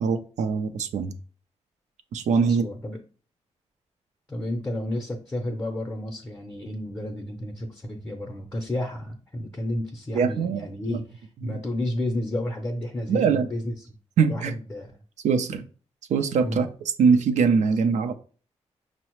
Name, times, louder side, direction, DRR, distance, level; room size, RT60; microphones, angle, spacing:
voice 1, 0.0-1.1 2.1-2.7 10.1-11.0 11.4-11.6 13.1-13.5 14.2-14.6 15.2-15.6 16.1-16.7 17.0-18.1, right 5 dB, 80° right, 8 dB, 0.4 m, -22 dB
voice 2, 2.4-3.0 4.3-13.7 14.3-14.9 16.4-16.6, left 1 dB, 20° left, 2 dB, 0.5 m, -31 dB
5.4 x 2.0 x 2.9 m, 0.39 s
cardioid pair, 95°, 12 cm